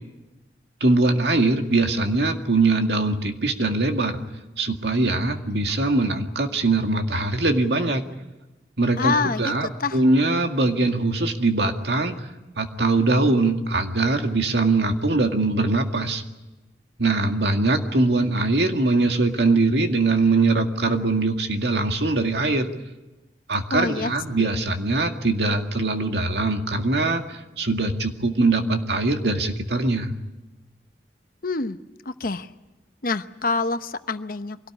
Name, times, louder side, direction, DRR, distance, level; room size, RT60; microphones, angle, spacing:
voice 1, 0.8-4.2 4.6-8.0 8.8-12.3 12.6-16.2 17.0-22.7 23.5-30.1, right 2 dB, 70° right, 4 dB, 2.1 m, -22 dB
voice 2, 9.0-10.0 23.7-24.5 31.4-31.8 32.2-32.5 33.0-34.7, left 3 dB, 55° left, 10 dB, 1.0 m, -26 dB
24.5 x 18.0 x 10.0 m, 1.1 s
head